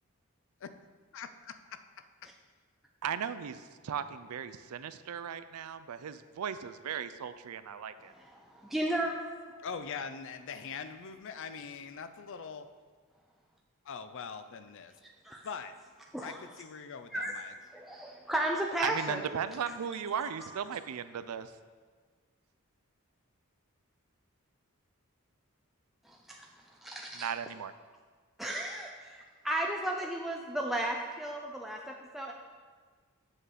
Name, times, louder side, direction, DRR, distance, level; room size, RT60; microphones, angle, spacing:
voice 1, 1.1-1.8 2.2-2.3 9.6-12.7 13.8-15.0 15.4-15.8 16.2-17.5, left 6 dB, 60° left, 10 dB, 0.5 m, -42 dB
voice 2, 3.0-8.1 18.8-21.5 27.1-27.7, right 8 dB, 90° right, 13 dB, 0.4 m, -37 dB
voice 3, 8.0-9.2 15.2-15.5 16.1-16.4 17.1-17.4 17.7-19.2 26.0-26.5 26.8-27.3 28.4-32.3, right 1 dB, ahead, -1 dB, 0.4 m, -34 dB
7.8 x 6.3 x 4.1 m, 1.5 s
head